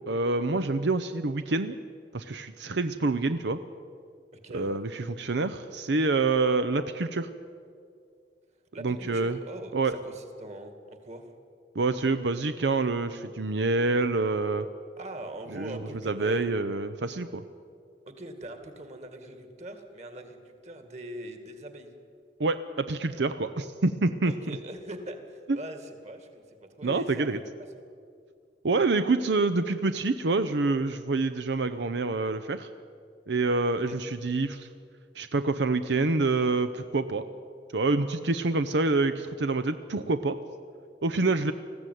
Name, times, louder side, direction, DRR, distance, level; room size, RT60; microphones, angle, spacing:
voice 1, 0.1-1.8 2.1-3.6 4.5-7.3 8.8-9.4 9.7-10.0 11.7-14.7 15.5-15.8 16.0-17.4 22.4-24.3 26.8-27.4 28.6-32.7 33.3-34.7 35.2-37.2 37.7-40.4 41.0-41.5, right 3 dB, 85° right, 10 dB, 0.7 m, -27 dB
voice 2, 4.3-4.8 8.7-11.3 15.0-16.6 18.1-21.9 24.2-27.3 33.6-34.0, right 1 dB, 40° right, 7 dB, 2.1 m, -42 dB
20.0 x 15.0 x 9.3 m, 2.3 s
head